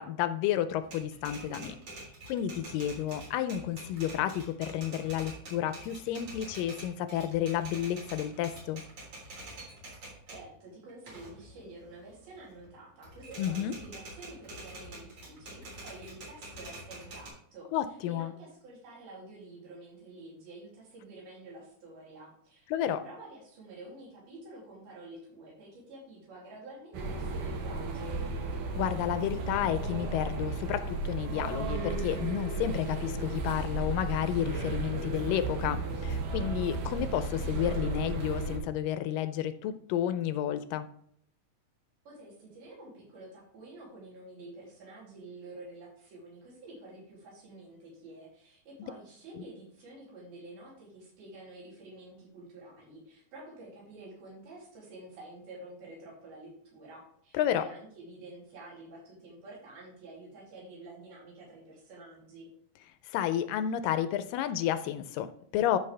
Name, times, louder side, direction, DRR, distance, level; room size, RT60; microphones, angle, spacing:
voice 1, 0.0-8.8 13.4-13.7 17.7-18.3 22.7-23.0 28.7-40.9 57.3-57.6 63.1-65.8, left 11 dB, 80° left, 11 dB, 2.1 m, -31 dB
Typewriter, 0.8-10.5 10.9-12.7 13.0-17.3, right 2 dB, 50° right, 4.9 m, -46 dB
voice 2, 10.3-17.7 18.1-28.2 42.1-62.5, right 2 dB, 85° right, -4 dB, 4.8 m, -49 dB
sound 1, 26.9-38.6, right 3 dB, 65° right, 2.7 m, -34 dB
13.0 x 5.3 x 3.3 m, 0.65 s
omnidirectional pair, 4.2 m